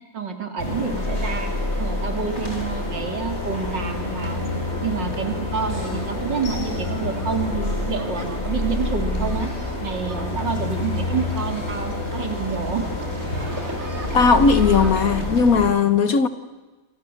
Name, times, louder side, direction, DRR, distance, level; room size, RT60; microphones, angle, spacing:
voice 1, 0.1-1.5 1.8-4.4 4.8-9.5 9.8-12.9, right 5 dB, 65° right, 3.6 m, -28 dB
sound 1, 0.6-15.7, left 2 dB, 35° left, 6.9 m, -28 dB
sound 2, 3.8-9.4, left 2 dB, 90° left, 3.3 m, -36 dB
sound 3, 5.5-15.4, right 2 dB, 35° right, 3.0 m, -40 dB
voice 2, 14.1-16.3, left 5 dB, 50° left, 1.4 m, -17 dB
29.0 x 25.0 x 7.9 m
omnidirectional pair, 2.1 m